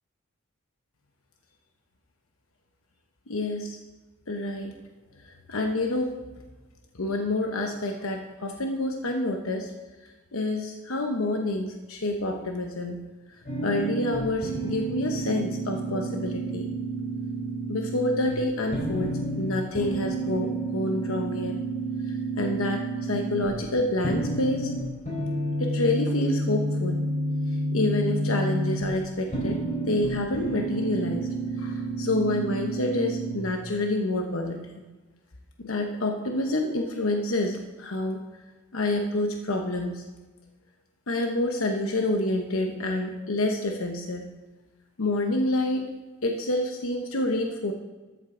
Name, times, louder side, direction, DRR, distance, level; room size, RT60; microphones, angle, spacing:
voice 1, 3.3-3.8 4.3-4.7 5.2-6.1 6.9-9.7 10.3-13.0 13.6-16.7 17.7-21.6 22.1-24.7 25.6-27.0 27.7-31.3 31.6-34.8 35.6-38.2 38.7-40.0 41.1-44.3 45.0-45.9 46.2-47.7, left 2 dB, 80° left, 3 dB, 1.0 m, -28 dB
sound 1, 13.4-33.3, right 2 dB, 35° left, 4.1 m, -30 dB
13.5 x 8.2 x 3.8 m, 1.2 s
head